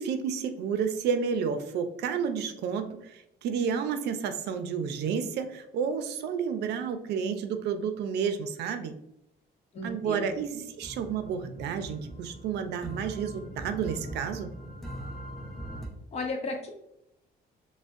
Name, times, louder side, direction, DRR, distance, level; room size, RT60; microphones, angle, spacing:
voice 1, 0.0-8.9 9.8-14.5, right 6 dB, 85° right, 9 dB, 0.5 m, -31 dB
voice 2, 9.7-10.3 16.1-16.7, left 2 dB, 40° left, 2 dB, 0.8 m, -34 dB
sound 1, 10.3-15.9, right 1 dB, ahead, 0.7 m, -42 dB
6.0 x 2.1 x 2.5 m, 0.81 s
cardioid pair, 130°, 17 cm